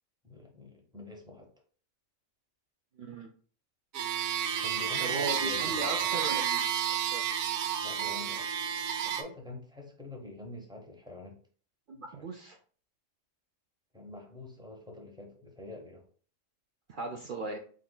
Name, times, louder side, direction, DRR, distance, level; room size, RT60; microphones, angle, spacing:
voice 1, 0.2-1.5 4.6-6.2 7.8-8.7 9.0-11.4 12.1-12.3 13.9-16.1, left 2 dB, 5° right, 1 dB, 0.6 m, -46 dB
voice 2, 2.9-3.3 5.0-6.7 7.1-7.2 11.9-12.6 16.9-17.6, right 2 dB, 65° right, 3 dB, 0.5 m, -37 dB
sound 1, 3.9-9.2, right 9 dB, 85° right, 1.0 m, -31 dB
4.5 x 3.7 x 2.2 m, 0.43 s
omnidirectional pair, 1.4 m